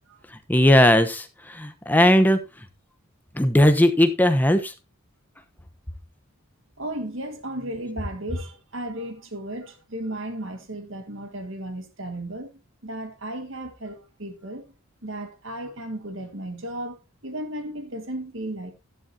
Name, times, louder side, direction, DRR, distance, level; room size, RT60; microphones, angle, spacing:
voice 1, 0.3-2.7 3.3-4.7, left 1 dB, 10° left, 1.0 m, -18 dB
voice 2, 6.8-14.6 15.0-18.7, right 1 dB, 60° right, 1.9 m, -35 dB
12.0 x 11.5 x 2.8 m
head